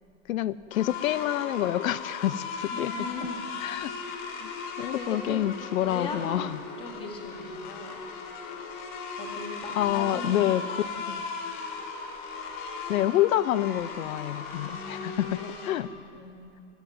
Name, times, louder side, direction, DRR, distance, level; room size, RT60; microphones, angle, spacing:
voice 1, 0.3-2.9 3.6-3.9 4.4-4.5 4.8-6.6 9.8-11.2 12.9-15.9, left 13 dB, 85° left, 18 dB, 0.7 m, -28 dB
sound 1, 0.7-15.7, left 5 dB, 35° left, 2.8 m, -37 dB
voice 2, 2.7-3.5 3.8-4.3 4.9-5.5 5.8-6.4 6.8-8.0 9.2-10.9 14.5-16.6, left 3 dB, 15° left, 3 dB, 1.7 m, -40 dB
24.0 x 14.0 x 9.3 m, 2.5 s
supercardioid pair, 180°, 39 cm